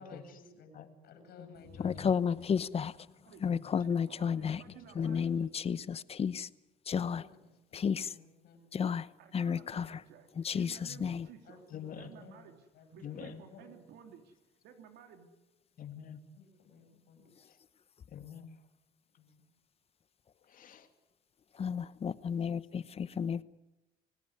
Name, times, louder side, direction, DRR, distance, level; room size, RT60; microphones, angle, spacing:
voice 1, 0.0-0.7 1.0-2.1 6.9-8.6 11.4-12.5 12.7-13.7 16.3-17.5 19.2-19.5, left 4 dB, 70° left, 7 dB, 8.0 m, -56 dB
voice 2, 1.8-3.0 3.4-4.6 4.9-6.5 6.9-7.3 7.7-8.2 8.7-10.0 10.4-11.3 21.5-23.4, left 7 dB, 35° left, 17 dB, 0.9 m, -32 dB
voice 3, 3.8-5.4 9.2-10.3 10.5-11.6 11.9-14.3 14.6-15.3, right 8 dB, 80° right, 5 dB, 3.0 m, -55 dB
voice 4, 4.4-5.1 10.9-11.0 11.7-12.1 13.0-13.4 15.8-16.2 18.1-18.5 20.5-20.9, left 8 dB, 55° left, 7 dB, 2.7 m, -46 dB
27.5 x 17.5 x 9.8 m, 1.0 s
cardioid pair, 110°, 17 cm